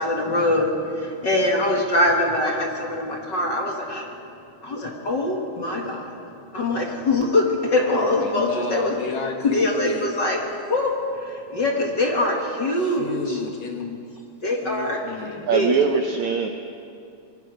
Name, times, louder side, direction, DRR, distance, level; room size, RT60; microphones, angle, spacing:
voice 1, 0.0-4.1 4.6-6.2 6.5-8.9 9.5-10.4 10.6-13.4 14.4-15.8, left 2 dB, 40° left, 0 dB, 1.8 m, -23 dB
voice 2, 7.8-10.1 12.7-14.0 14.6-15.5, left 5 dB, 60° left, 3 dB, 2.1 m, -33 dB
voice 3, 15.5-16.5, right 6 dB, 75° right, 5 dB, 1.7 m, -22 dB
25.5 x 22.0 x 5.2 m, 2.6 s
omnidirectional pair, 4.2 m